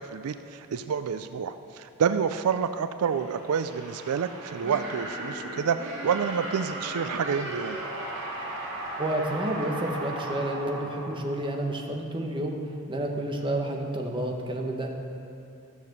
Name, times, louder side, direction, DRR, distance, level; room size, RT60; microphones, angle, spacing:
voice 1, 0.0-7.8, right 6 dB, 80° right, 10 dB, 0.4 m, -28 dB
sound 1, 3.0-11.9, right 1 dB, 60° right, 2.5 m, -36 dB
voice 2, 9.0-12.6 12.9-14.9, right 1 dB, 20° right, 2 dB, 1.1 m, -30 dB
13.5 x 6.9 x 6.6 m, 2.7 s
head